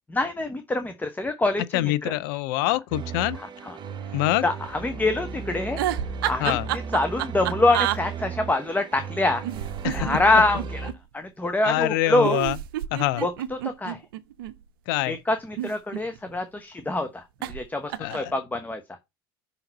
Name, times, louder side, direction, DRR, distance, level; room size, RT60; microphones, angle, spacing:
voice 1, 0.1-2.1 3.7-3.8 4.4-5.8 6.3-9.4 9.9-10.9 11.1-12.4 13.2-13.3 13.8-14.0 15.1-18.8, left 2 dB, 15° left, 0.9 m, -25 dB
voice 2, 1.7-3.4 4.1-4.4 6.4-6.7 9.8-10.1 11.6-12.6 12.9-13.2 14.9-15.2 18.0-18.3, left 16 dB, 70° left, 0.5 m, -25 dB
sound 1, 2.9-10.9, right 5 dB, 40° right, 1.0 m, -35 dB
sound 2, 5.7-8.0 9.4-11.0 12.2-14.5 15.4-16.4 17.4-17.6 17.9-18.3, right 12 dB, 80° right, 0.5 m, -29 dB
5.7 x 3.9 x 5.3 m
hypercardioid pair, 70°, 12 cm